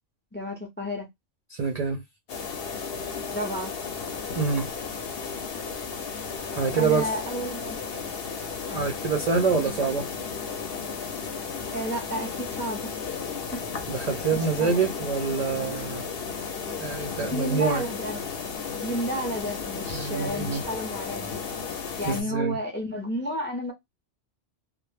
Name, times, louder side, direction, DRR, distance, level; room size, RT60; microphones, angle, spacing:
voice 1, 0.3-1.1 3.3-3.7 6.7-8.0 8.7-8.8 11.7-13.2 14.3-14.8 17.3-18.2 18.8-21.3 22.0-23.7, equal, 20° left, 0.3 m, -32 dB
voice 2, 1.5-2.0 4.4-4.7 6.6-7.1 8.7-10.1 13.9-16.0 16.8-17.8 19.9-20.6 22.0-22.6, right 5 dB, 60° right, 0.4 m, -26 dB
sound 1, 2.3-22.2, left 5 dB, 60° left, 0.8 m, -34 dB
2.1 x 2.0 x 3.1 m
omnidirectional pair, 1.2 m